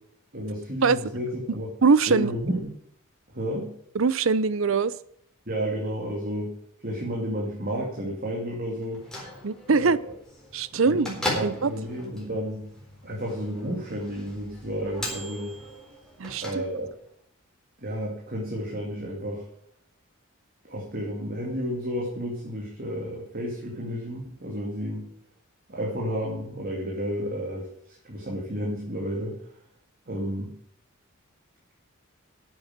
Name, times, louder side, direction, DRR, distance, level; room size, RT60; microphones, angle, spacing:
voice 1, 0.3-1.7 2.1-2.7 3.3-3.7 5.5-6.5 6.8-9.0 9.7-9.9 10.7-11.0 11.3-12.7 13.0-15.6 16.4-16.9 17.8-19.4 20.6-25.1 25.7-27.7 28.0-29.4 30.1-30.5, equal, 45° right, 2.5 m, -31 dB
voice 2, 1.8-2.3 3.9-4.9 9.4-10.0 10.5-11.7 16.2-16.6, right 4 dB, 65° right, 0.6 m, -22 dB
Bell / Microwave oven, 8.8-17.1, left 1 dB, 5° left, 4.1 m, -38 dB
8.9 x 7.7 x 8.9 m
head